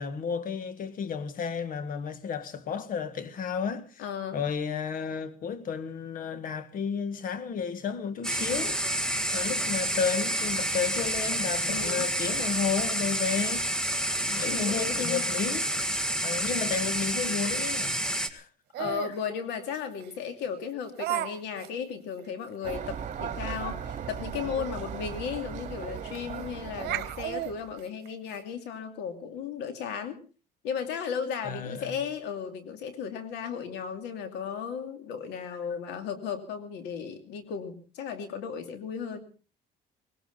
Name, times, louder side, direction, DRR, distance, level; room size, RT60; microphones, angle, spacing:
voice 1, 0.0-4.0 4.3-9.1 9.3-13.7 14.3-18.5 31.4-32.0, left 6 dB, 55° left, 1.7 m, -32 dB
voice 2, 4.0-4.4 11.7-12.1 14.5-15.2 18.3-18.4 18.8-30.2 30.6-39.2, left 7 dB, 90° left, 2.6 m, -35 dB
sound 1, 8.2-18.3, right 1 dB, 5° left, 1.5 m, -29 dB
Laughter, 18.7-19.2 20.0-20.1 21.0-21.3 21.6-21.7 22.2-22.3 22.6-22.8 24.7-24.8 25.1-25.2 26.1-26.4 26.8-28.4, right 14 dB, 75° right, 1.2 m, -33 dB
sound 2, 22.6-27.8, right 8 dB, 45° right, 2.3 m, -37 dB
19.5 x 18.5 x 4.0 m
cardioid pair, 110°, 17 cm